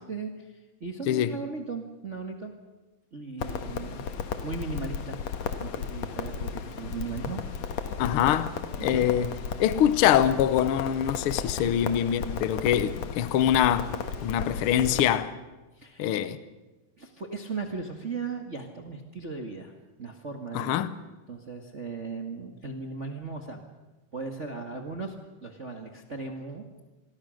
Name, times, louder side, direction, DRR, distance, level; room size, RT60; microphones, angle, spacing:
voice 1, 0.1-2.5 3.1-4.0 4.4-5.2 5.6-7.4 8.0-8.2 8.8-9.1 11.6-11.8 15.7-16.3 17.0-19.7 20.0-20.8 21.3-23.6 24.1-26.6, right 4 dB, 30° right, 1.3 m, -37 dB
Crackle, 3.4-15.1, left 6 dB, 60° left, 2.4 m, -34 dB
voice 2, 8.0-8.6 8.8-9.3 9.6-13.9 14.2-15.3 16.0-16.4 20.5-20.9, left 10 dB, 85° left, 1.2 m, -24 dB
27.5 x 21.5 x 6.4 m
omnidirectional pair, 3.8 m